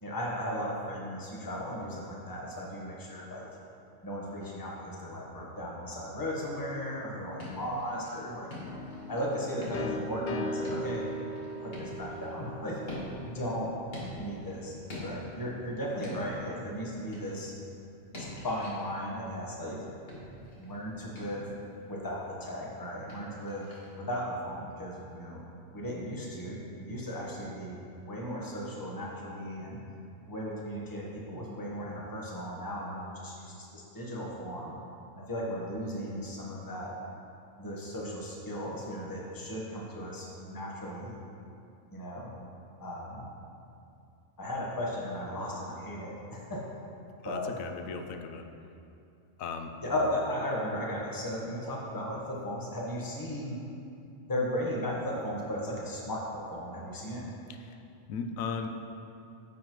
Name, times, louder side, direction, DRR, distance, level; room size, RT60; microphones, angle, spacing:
voice 1, 0.0-3.5 4.0-8.5 9.1-11.0 11.6-12.8 13.2-13.7 14.1-14.7 15.0-17.5 18.1-19.8 20.6-21.5 21.9-25.4 25.7-27.8 28.1-29.8 30.3-34.7 35.2-36.9 37.6-41.2 41.9-42.3 42.8-43.3 44.4-46.6 47.2-47.6 49.8-53.6 54.3-57.3, equal, 15° left, -3 dB, 1.1 m, -36 dB
sound 1, 7.2-8.2 8.5-9.3 9.6-10.2 10.6-12.4 12.9-13.5 13.9-14.6 14.9-15.5 16.0-16.6 17.1-17.5 18.1-18.9 20.1-20.7 21.1-21.6 23.1-23.9, left 2 dB, 45° left, 1.8 m, -44 dB
sound 2, 8.7-14.3, equal, 60° left, 0.6 m, -39 dB
voice 2, 47.2-48.5 49.4-49.7 57.5-57.8 58.1-58.7, left 5 dB, 90° left, 6 dB, 1.0 m, -37 dB
9.9 x 7.4 x 3.1 m, 2.6 s
omnidirectional pair, 1.4 m